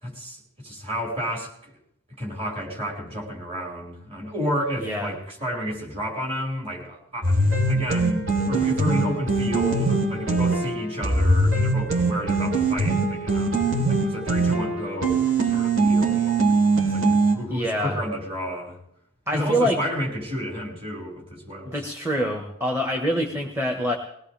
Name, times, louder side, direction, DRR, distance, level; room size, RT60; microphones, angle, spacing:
voice 1, 0.0-1.7 2.2-13.5 13.9-16.4 16.9-17.1 17.3-18.8 19.3-21.8, equal, 30° right, -2 dB, 5.4 m, -31 dB
voice 2, 4.8-5.1 17.5-18.0 19.3-19.8 21.6-24.0, equal, 10° right, 3 dB, 1.4 m, -25 dB
sound 1, 7.2-17.4, right 3 dB, 70° right, 3.9 m, -22 dB
21.5 x 18.5 x 3.5 m, 0.74 s
head